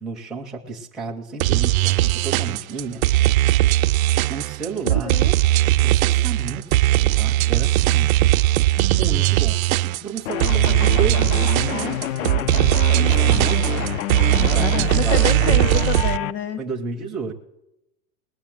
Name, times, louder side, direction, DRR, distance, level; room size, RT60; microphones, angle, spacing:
voice 1, 0.0-3.0 4.3-5.2 5.7-8.1 8.8-15.9 16.6-17.3, right 4 dB, ahead, -2 dB, 0.4 m, -32 dB
sound 1, 1.4-16.2, right 16 dB, 80° right, 0.5 m, -19 dB
voice 2, 4.8-5.3 14.3-16.6, left 7 dB, 55° left, 13 dB, 1.2 m, -28 dB
sound 2, 10.3-16.3, left 12 dB, 80° left, 0.6 m, -28 dB
19.0 x 6.5 x 7.5 m, 0.89 s
supercardioid pair, 165°, 41 cm